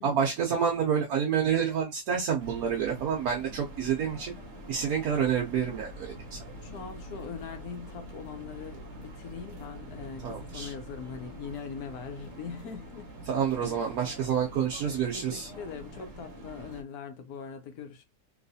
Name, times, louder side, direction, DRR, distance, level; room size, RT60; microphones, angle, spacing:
voice 1, 0.0-4.3 4.7-6.4 10.2-10.7 13.3-15.5, right 7 dB, 70° right, 1.2 m, -28 dB
sound 1, 2.4-16.8, right 1 dB, 40° right, 0.9 m, -45 dB
voice 2, 6.6-13.1 13.6-13.8 15.1-18.0, left 6 dB, 75° left, 1.2 m, -41 dB
3.2 x 3.1 x 2.6 m
omnidirectional pair, 1.6 m